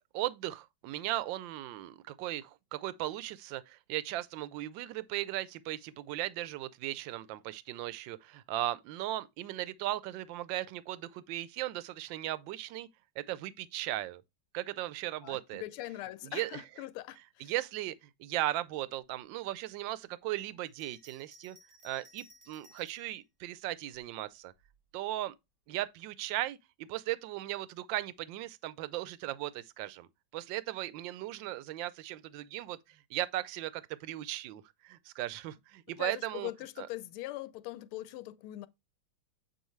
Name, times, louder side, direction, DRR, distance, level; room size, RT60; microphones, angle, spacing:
voice 1, 0.1-12.9 13.2-14.2 14.5-15.6 16.2-16.6 17.4-21.6 21.8-24.5 24.9-25.3 25.7-30.1 30.3-36.5 36.8-36.9, right 15 dB, 75° right, 1.2 m, -37 dB
voice 2, 15.2-17.5 36.0-38.7, left 16 dB, 80° left, 1.4 m, -41 dB
Bell, 20.7-23.1 23.9-24.8, equal, 45° right, 1.0 m, -60 dB
8.0 x 4.3 x 3.1 m
omnidirectional pair, 2.4 m